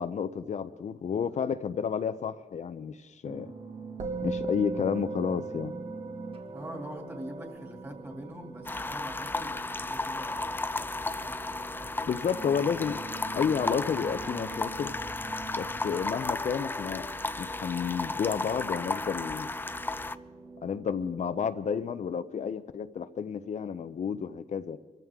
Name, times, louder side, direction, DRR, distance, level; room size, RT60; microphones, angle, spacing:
voice 1, 0.0-3.5 4.2-5.7 12.1-13.0 13.3-14.9 15.6-17.1 17.4-19.5 20.6-24.8, left 7 dB, 60° left, 0.6 m, -31 dB
sound 1, 3.2-21.5, right 3 dB, 45° right, 1.9 m, -46 dB
Musical instrument, 4.0-13.5, right 3 dB, 65° right, 1.6 m, -40 dB
voice 2, 6.5-12.2, right 1 dB, 20° right, 2.8 m, -44 dB
sound 2, 8.7-20.2, left 2 dB, 15° left, 0.4 m, -34 dB
24.5 x 14.5 x 3.6 m
wide cardioid pair, 130°, 14 cm